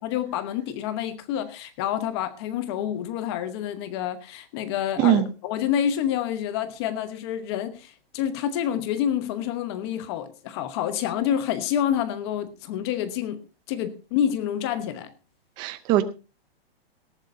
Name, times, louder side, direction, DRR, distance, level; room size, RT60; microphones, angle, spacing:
voice 1, 0.0-13.4 13.7-15.1, left 10 dB, 25° left, 1.0 m, -28 dB
voice 2, 15.6-16.0, right 12 dB, 15° right, 0.6 m, -20 dB
18.5 x 13.5 x 2.7 m
hypercardioid pair, 170°, 31 cm